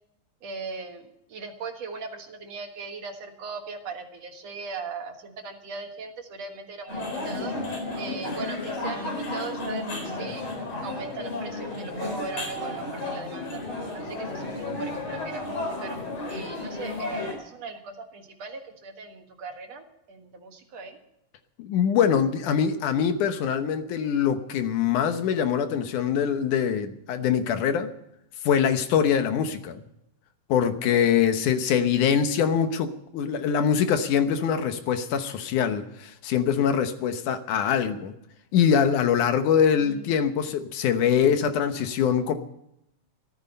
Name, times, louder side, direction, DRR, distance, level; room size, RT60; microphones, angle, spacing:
voice 1, 0.4-7.5 7.9-10.4 10.8-13.6 13.9-16.0 16.3-21.0 39.8-40.1, right 4 dB, 55° right, 4 dB, 2.5 m, -39 dB
sound 1, 6.9-17.3, left 2 dB, 50° left, 5.4 m, -33 dB
voice 2, 21.6-27.9 28.4-29.8 30.5-38.1 38.5-42.3, left 8 dB, 75° left, 8 dB, 2.5 m, -23 dB
14.5 x 14.0 x 5.5 m, 0.79 s
omnidirectional pair, 3.7 m